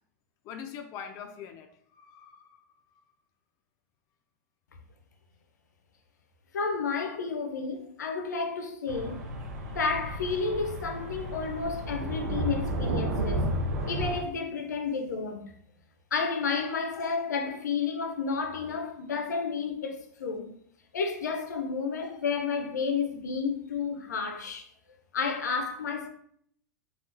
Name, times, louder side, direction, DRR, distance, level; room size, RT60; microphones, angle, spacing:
voice 1, 0.4-2.5 16.5-16.7 17.0-17.2 22.0-22.1, left 7 dB, 40° left, 0.4 m, -43 dB
voice 2, 6.5-9.2 9.7-13.5 13.9-15.5 16.1-20.5 20.9-24.7 25.1-26.1, left 5 dB, 85° left, 0.5 m, -31 dB
sound 1, 8.9-14.2, right 1 dB, 70° right, 0.6 m, -32 dB
3.5 x 2.3 x 2.8 m
hypercardioid pair, 110°, 9 cm